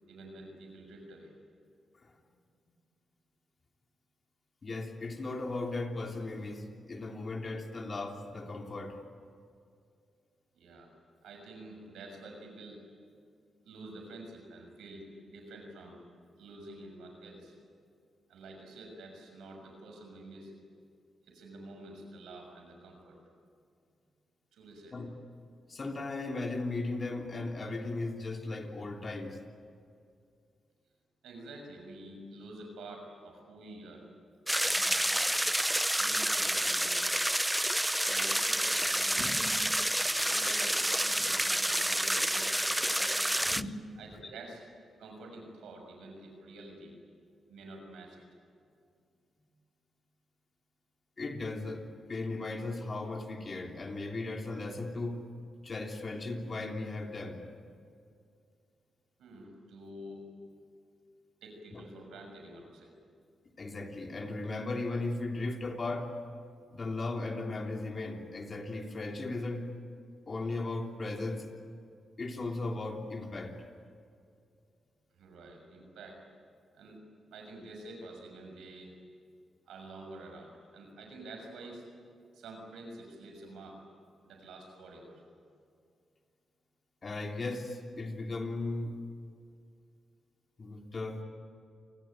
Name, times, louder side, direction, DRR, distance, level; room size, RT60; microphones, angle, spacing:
voice 1, 0.1-1.3 10.5-10.9 11.2-12.8 13.6-16.0 16.4-17.6 18.3-20.5 21.3-23.2 24.5-25.0 31.2-34.1 34.6-35.4 36.0-37.0 38.0-39.3 40.0-43.6 44.0-44.6 45.0-46.9 47.5-48.3 59.2-60.2 61.4-62.9 75.1-76.2 76.7-77.0 77.3-79.0 79.7-81.9 82.3-83.8 84.2-85.2, right 2 dB, 85° right, 3 dB, 6.3 m, -48 dB
voice 2, 4.6-9.0 24.9-25.1 25.7-29.4 39.2-39.7 43.4-43.7 51.2-55.2 55.6-57.4 61.7-61.8 63.6-66.1 66.7-69.7 70.3-71.5 72.2-73.6 87.0-89.0 90.6-91.2, left 2 dB, 45° left, 2 dB, 3.4 m, -37 dB
sound 1, 34.5-43.6, right 1 dB, 10° right, 0.7 m, -29 dB
28.0 x 20.5 x 9.2 m, 2.3 s
supercardioid pair, 55°, 0 cm